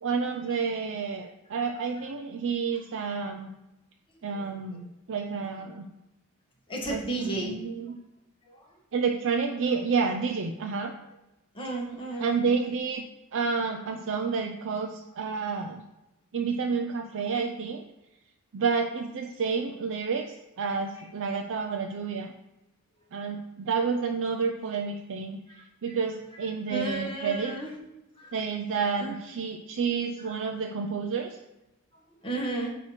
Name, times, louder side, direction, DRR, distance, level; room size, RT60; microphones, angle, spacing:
voice 1, 0.0-3.5 4.2-5.8 6.9-7.9 8.9-10.9 12.2-13.1 13.3-15.8 16.3-17.8 18.5-22.3 23.1-27.5 28.3-31.4, right 5 dB, 60° right, 3 dB, 0.5 m, -30 dB
voice 2, 6.7-7.5 8.5-8.6 11.5-12.4 20.9-21.0 25.5-25.6 26.7-27.7 28.2-28.3 29.0-29.1 32.2-32.7, right 2 dB, 25° left, -2 dB, 1.6 m, -33 dB
8.8 x 3.0 x 5.8 m, 0.96 s
head